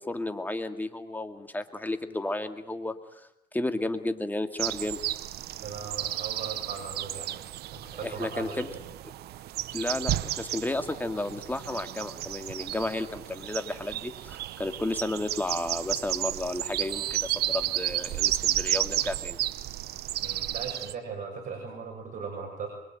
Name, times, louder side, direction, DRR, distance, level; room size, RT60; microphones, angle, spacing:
voice 1, 0.0-2.9 3.5-5.0 8.0-8.7 9.7-19.4, left 2 dB, 10° left, 8 dB, 2.2 m, -32 dB
sound 1, 4.6-20.9, right 14 dB, 75° right, 1.0 m, -32 dB
voice 2, 5.6-7.4 7.7-8.8 20.2-22.7, right 5 dB, 50° right, 1 dB, 6.8 m, -38 dB
26.5 x 23.0 x 9.1 m, 0.81 s
cardioid pair, 110°, 17 cm